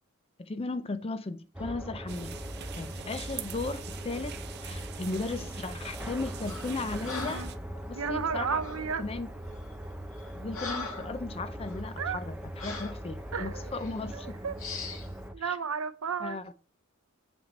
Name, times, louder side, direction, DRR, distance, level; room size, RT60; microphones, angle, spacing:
voice 1, 0.4-2.4 2.7-7.4 7.9-8.6 9.0-9.3 10.4-14.4 15.4-15.6 16.2-16.5, left 3 dB, 30° left, 0.5 m, -36 dB
sound 1, 1.5-15.3, equal, 5° right, 0.8 m, -40 dB
sound 2, 2.1-7.6, right 9 dB, 55° right, 0.6 m, -45 dB
Breathing, 6.5-6.7 7.0-7.6 8.6-8.9 9.5-9.7 10.1-11.2 11.6-11.8 12.6-13.0 13.7-13.9 14.6-15.1, left 4 dB, 85° left, 2.2 m, -39 dB
voice 2, 8.0-9.0 12.0-12.2 13.3-13.7 14.1-14.5 15.3-16.4, right 6 dB, 90° right, 0.7 m, -33 dB
7.6 x 5.9 x 4.0 m
head